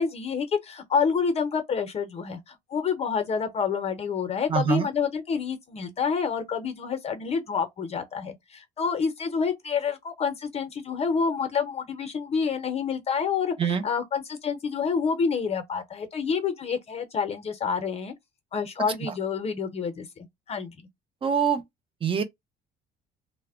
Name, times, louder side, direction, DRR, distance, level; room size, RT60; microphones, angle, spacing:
voice 1, 0.0-18.1 18.5-20.1 20.5-20.8, left 6 dB, 40° left, 0.6 m, -28 dB
voice 2, 4.5-4.9 13.6-13.8 21.2-21.6 22.0-22.2, right 7 dB, 30° right, 0.6 m, -24 dB
2.0 x 2.0 x 3.5 m
cardioid pair, 110°, 17 cm